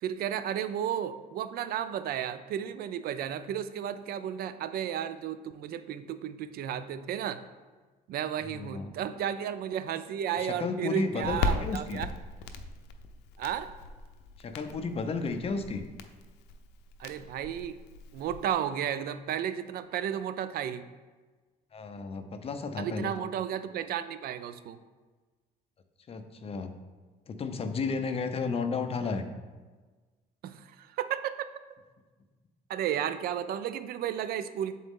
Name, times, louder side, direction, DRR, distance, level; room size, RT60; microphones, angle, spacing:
voice 1, 0.0-7.4 8.1-12.1 13.4-13.7 17.0-17.8 18.1-20.8 22.8-24.8 30.4-31.5 32.7-34.7, right 9 dB, 65° right, 12 dB, 0.4 m, -33 dB
voice 2, 8.5-8.9 10.4-12.0 14.4-15.8 21.7-23.1 26.1-26.7 27.3-29.3, left 4 dB, 35° left, 8 dB, 0.6 m, -33 dB
Crackle, 11.2-18.5, left 4 dB, 80° left, 0.5 m, -38 dB
7.4 x 4.0 x 3.6 m, 1.3 s
cardioid pair, 110°, 17 cm